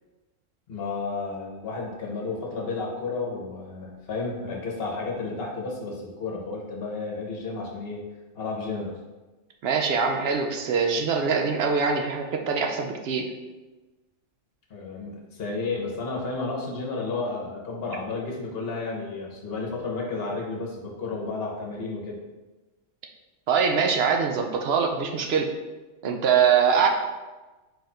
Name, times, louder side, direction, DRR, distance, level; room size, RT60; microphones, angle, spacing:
voice 1, 0.7-8.0 8.3-9.0 14.7-22.2, left 3 dB, 55° left, -1 dB, 1.1 m, -32 dB
voice 2, 9.6-13.3 23.5-25.5 26.0-26.9, right 6 dB, 65° right, 2 dB, 0.7 m, -23 dB
4.7 x 2.5 x 4.3 m, 1.2 s
omnidirectional pair, 1.3 m